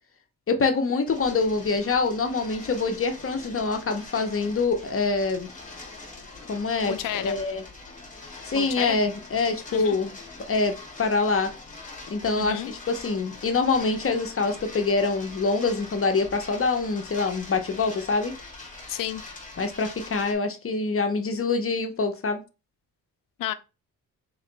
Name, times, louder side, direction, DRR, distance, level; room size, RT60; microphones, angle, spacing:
voice 1, 0.5-5.5 6.5-7.6 8.4-10.1 10.5-11.5 12.1-18.3 19.6-22.4, left 4 dB, 40° left, 0.8 m, -25 dB
sound 1, 1.1-20.3, left 3 dB, 20° left, 1.7 m, -43 dB
voice 2, 6.8-7.3 8.5-9.0 9.7-10.0 12.3-12.7 18.9-19.2 23.4-23.5, left 12 dB, 70° left, 0.5 m, -31 dB
3.8 x 3.2 x 3.9 m
cardioid pair, 90°, 34 cm